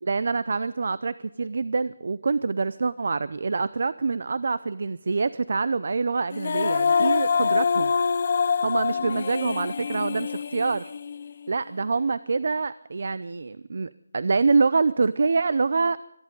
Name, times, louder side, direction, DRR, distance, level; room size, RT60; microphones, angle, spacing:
voice 1, 0.0-7.9 8.6-10.9 11.5-16.0, right 4 dB, 55° right, 16 dB, 0.5 m, -25 dB
Female singing, 6.3-11.5, left 6 dB, 40° left, 0.5 m, -25 dB
22.5 x 14.0 x 3.9 m, 0.83 s
figure-of-eight pair, 170°, 0 cm